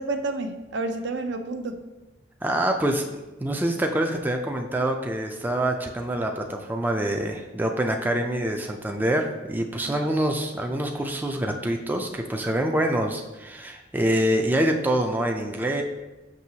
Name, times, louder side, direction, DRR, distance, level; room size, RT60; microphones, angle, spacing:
voice 1, 0.0-1.8 9.9-10.1, right 2 dB, 65° right, 6 dB, 0.5 m, -30 dB
voice 2, 2.4-15.8, right 1 dB, 10° right, 3 dB, 0.4 m, -26 dB
6.1 x 5.6 x 2.8 m, 1.1 s
head